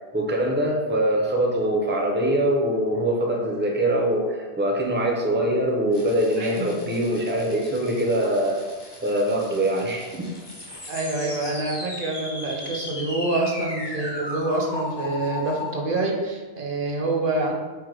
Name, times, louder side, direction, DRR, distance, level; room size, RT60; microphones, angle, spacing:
voice 1, 0.1-8.6 9.0-10.3, right 1 dB, 15° right, 0 dB, 0.5 m, -23 dB
sound 1, 5.9-15.7, left 2 dB, 30° left, 0.7 m, -37 dB
voice 2, 6.4-6.8 10.9-17.5, right 2 dB, 60° right, 0 dB, 0.9 m, -26 dB
4.6 x 2.2 x 4.6 m, 1.4 s
omnidirectional pair, 1.0 m